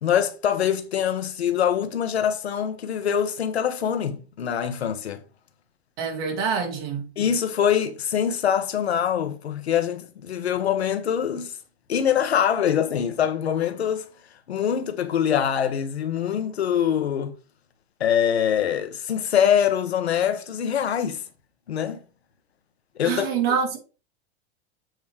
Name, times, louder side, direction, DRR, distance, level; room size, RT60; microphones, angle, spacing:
voice 1, 0.0-5.2 7.2-11.5 11.9-14.1 14.5-17.4 18.0-21.2 21.7-22.0 23.0-23.6, left 9 dB, 90° left, 1.0 m, -24 dB
voice 2, 6.0-7.1 23.0-23.8, right 6 dB, 60° right, 2.9 m, -25 dB
7.7 x 3.2 x 4.9 m
hypercardioid pair, 105°, 31 cm